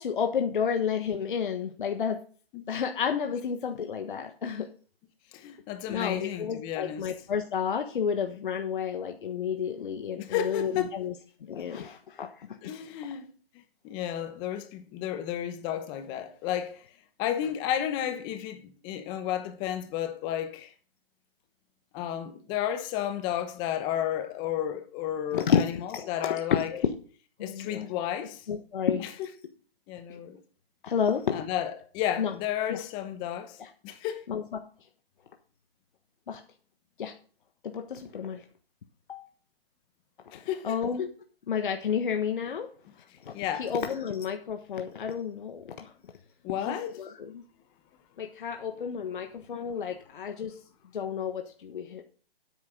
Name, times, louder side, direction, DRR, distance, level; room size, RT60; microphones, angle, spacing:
voice 1, 0.0-2.2 2.7-4.7 5.9-11.1 11.4-12.5 25.3-25.6 25.9-26.4 26.7-26.9 27.4-27.9 28.5-29.0 30.1-30.2 30.8-31.4 32.2-32.3 32.7-32.8 33.6-33.7 34.3-34.4 36.3-36.4 37.0-37.1 37.6-38.4 39.1-39.3 40.3-40.4 40.6-41.1 41.5-42.7 43.2-43.3 43.6-45.9 46.7-47.4 48.2-50.5 50.9-52.0, left 7 dB, 55° left, 1.4 m, -31 dB
voice 2, 5.3-7.1 10.2-11.0 12.6-13.3 13.8-16.8 17.2-20.7 21.9-26.7 27.4-28.4 29.0-29.3 29.9-30.4 31.3-33.6 33.8-34.2 40.3-40.8 43.3-43.7 46.4-47.0, left 10 dB, 15° left, 0.9 m, -32 dB
10.5 x 9.0 x 3.8 m
hypercardioid pair, 155°, 30 cm